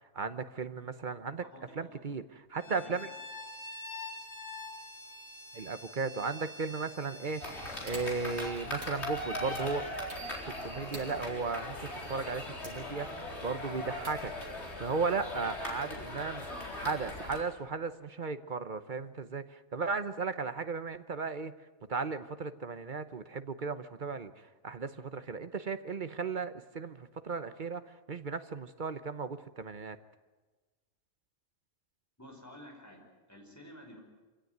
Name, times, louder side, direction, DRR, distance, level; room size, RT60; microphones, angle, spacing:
voice 1, 0.0-1.4 1.7-2.2 2.5-3.1 5.5-7.4 7.8-9.8 10.4-16.5 16.7-21.5 21.9-30.0, right 4 dB, 40° right, 11 dB, 0.9 m, -36 dB
voice 2, 1.4-2.0 2.6-3.1 32.2-34.0, equal, 10° left, 1 dB, 5.3 m, -52 dB
Bowed string instrument, 2.5-8.6, left 2 dB, 90° left, 3.6 m, -46 dB
sound 1, 7.3-15.0, right 1 dB, 65° right, 5.7 m, -53 dB
sound 2, 7.4-17.4, left 1 dB, 50° left, 4.6 m, -39 dB
26.0 x 17.0 x 9.5 m, 1.3 s
omnidirectional pair, 1.5 m